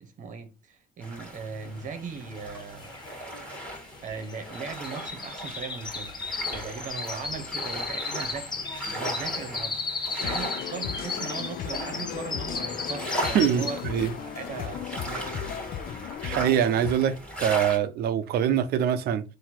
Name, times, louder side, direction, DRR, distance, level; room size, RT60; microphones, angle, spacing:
voice 1, 0.0-2.9 4.0-6.1 6.5-15.6, right 5 dB, 50° right, 1.1 m, -39 dB
sound 1, 1.0-17.8, right 1 dB, 5° left, 1.7 m, -38 dB
sound 2, 2.3-2.4 2.6-14.0 14.4-14.8 15.2-15.3, left 4 dB, 25° left, 0.7 m, -35 dB
sound 3, 10.2-16.9, left 10 dB, 60° left, 0.4 m, -36 dB
voice 2, 13.3-14.1 16.2-19.2, right 9 dB, 70° right, 0.6 m, -24 dB
3.9 x 2.8 x 4.4 m
cardioid pair, 110°, 17 cm